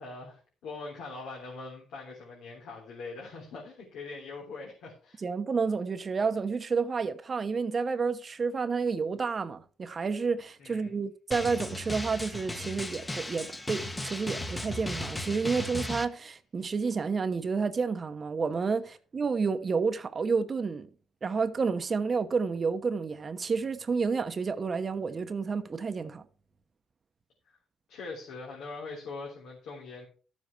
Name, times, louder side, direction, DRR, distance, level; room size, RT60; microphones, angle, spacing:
voice 1, 0.0-5.2 10.6-11.0 27.5-27.6 27.9-30.1, left 3 dB, 85° left, 3.4 m, -42 dB
voice 2, 5.2-20.9 21.2-26.2, right 5 dB, 40° right, 1.0 m, -30 dB
Drum, 11.3-16.1, left 1 dB, 15° left, 1.2 m, -36 dB
13.0 x 7.4 x 4.6 m
cardioid pair, 90°, 0 cm